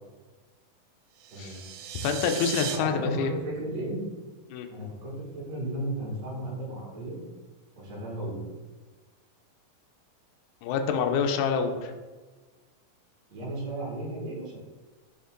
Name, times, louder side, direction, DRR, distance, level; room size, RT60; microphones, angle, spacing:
sound 1, 1.2-2.8, right 9 dB, 80° right, 2.1 m, -36 dB
voice 1, 2.0-3.3 4.5-4.7 10.6-11.9, left 6 dB, 80° left, 6 dB, 1.8 m, -27 dB
voice 2, 2.8-4.0 4.7-7.2 7.8-8.4 13.3-14.6, right 1 dB, 40° right, -5 dB, 1.8 m, -34 dB
5.3 x 5.1 x 3.7 m, 1.3 s
omnidirectional pair, 4.0 m